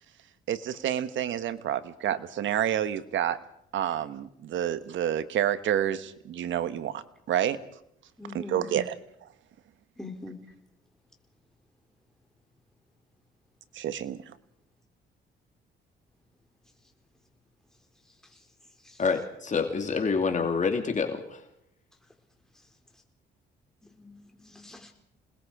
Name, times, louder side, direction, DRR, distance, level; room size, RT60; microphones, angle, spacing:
voice 1, 0.5-3.4 3.7-7.6 8.3-8.9 9.2-9.3 13.7-14.2, right 10 dB, 75° right, 13 dB, 1.3 m, -29 dB
voice 2, 8.2-8.7 10.0-10.4 18.3-18.4 18.8-19.0 23.8-24.9, left 3 dB, 5° left, 2 dB, 4.1 m, -44 dB
voice 3, 19.0-21.4, left 5 dB, 40° left, 4 dB, 2.6 m, -27 dB
27.5 x 20.0 x 4.9 m, 0.76 s
cardioid pair, 90°, 20 cm